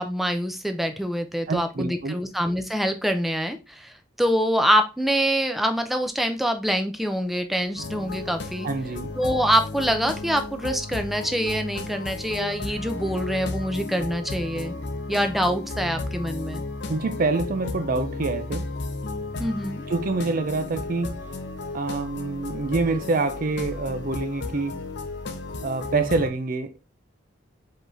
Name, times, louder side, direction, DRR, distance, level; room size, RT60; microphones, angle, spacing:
voice 1, 0.0-3.9 4.2-8.7 9.2-14.7 15.1-16.6 19.4-19.8, equal, ahead, 0.5 m, -25 dB
voice 2, 1.5-2.2 8.6-9.1 16.9-18.7 19.9-21.2 21.7-24.8 25.6-26.9, right 3 dB, 50° right, 0.5 m, -26 dB
sound 1, 7.8-26.3, left 2 dB, 65° left, 0.7 m, -34 dB
5.0 x 3.9 x 2.7 m
head